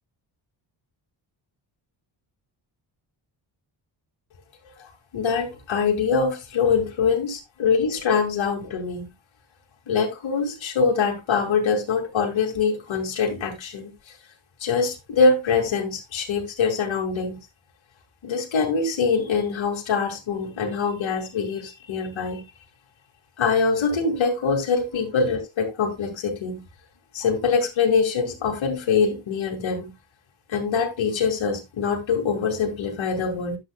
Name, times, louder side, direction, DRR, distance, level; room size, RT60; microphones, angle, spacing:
voice 1, 5.1-9.1 9.9-13.9 14.6-17.4 18.2-22.4 23.4-26.6 27.1-29.9 30.5-33.6, left 5 dB, 80° left, 2.5 m, -24 dB
11.5 x 7.5 x 2.4 m
cardioid pair, 100°, 46 cm